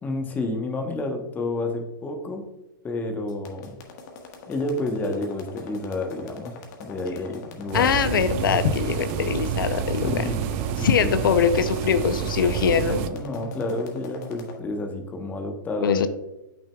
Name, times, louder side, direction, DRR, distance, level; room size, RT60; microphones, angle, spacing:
voice 1, 0.0-2.4 2.8-3.8 4.5-7.9 10.0-11.2 13.0-16.1, left 2 dB, 15° left, 4 dB, 1.0 m, -30 dB
sound 1, 3.3-14.5, left 5 dB, 50° left, 1.4 m, -41 dB
voice 2, 7.7-10.3 10.8-13.1 15.8-16.1, left 7 dB, 80° left, 11 dB, 0.5 m, -22 dB
sound 2, 7.7-13.1, right 9 dB, 40° right, 0.5 m, -28 dB
8.3 x 6.1 x 2.3 m, 0.99 s
hypercardioid pair, 140°, 11 cm